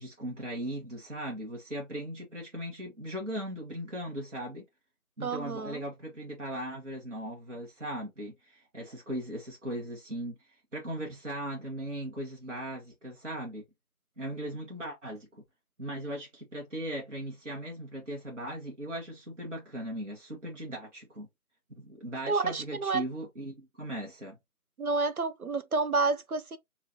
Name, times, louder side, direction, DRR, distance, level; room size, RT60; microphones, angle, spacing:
voice 1, 0.0-4.6 5.2-10.4 10.7-13.6 14.2-15.4 15.8-21.3 21.8-24.4, right 1 dB, 55° right, 1.6 m, -38 dB
voice 2, 5.2-5.8 22.3-23.0 24.8-26.6, right 3 dB, 75° right, 0.7 m, -29 dB
4.1 x 2.8 x 2.8 m
figure-of-eight pair, 165°, 43 cm